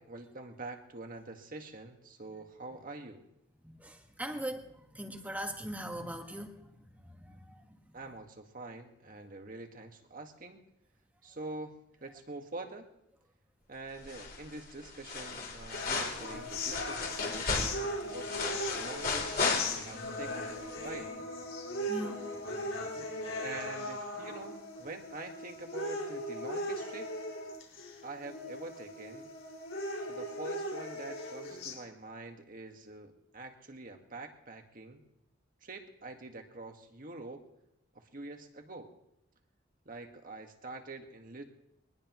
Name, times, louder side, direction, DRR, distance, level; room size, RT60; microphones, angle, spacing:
voice 1, 0.0-3.3 7.9-10.6 11.2-12.9 13.7-17.5 18.1-20.5 20.8-21.1 23.4-27.2 28.0-29.3 30.1-35.0 35.6-37.4 37.9-39.0 39.8-41.4, right 2 dB, 45° right, 4 dB, 1.7 m, -45 dB
voice 2, 3.6-6.7 7.0-7.8 21.7-22.3 23.0-23.1, right 1 dB, 10° right, 3 dB, 1.6 m, -41 dB
sound 1, 14.0-14.6 14.8-20.1 20.5-20.6, left 4 dB, 50° left, 3.5 m, -34 dB
sound 2, 15.7-31.7, left 1 dB, 70° left, 4.8 m, -39 dB
23.0 x 20.0 x 3.1 m, 0.80 s
head